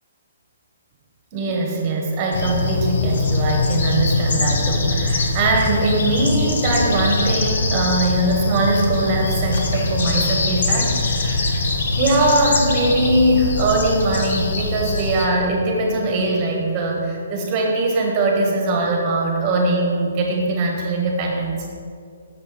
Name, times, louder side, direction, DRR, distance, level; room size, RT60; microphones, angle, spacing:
voice 1, 1.3-11.7 11.9-21.8, right 2 dB, 30° right, 0 dB, 1.5 m, -21 dB
sound 1, 2.3-15.3, left 2 dB, 60° left, 1.0 m, -22 dB
6.9 x 5.5 x 5.1 m, 2.2 s
hypercardioid pair, 155°, 0 cm